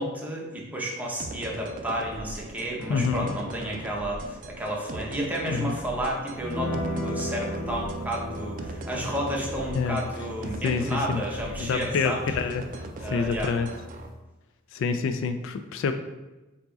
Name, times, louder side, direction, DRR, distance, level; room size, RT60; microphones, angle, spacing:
voice 1, 0.0-12.2 13.0-13.6, equal, 10° right, -3 dB, 0.8 m, -31 dB
sound 1, 1.2-14.1, right 2 dB, 40° right, 0.4 m, -40 dB
voice 2, 2.9-3.3 5.5-5.7 9.8-10.0 10.6-11.2 11.6-12.6 13.1-13.7 14.7-15.9, left 5 dB, 65° left, 9 dB, 0.3 m, -27 dB
sound 2, 6.4-14.1, equal, 40° left, 1.0 m, -36 dB
4.6 x 2.9 x 3.9 m, 1.1 s
head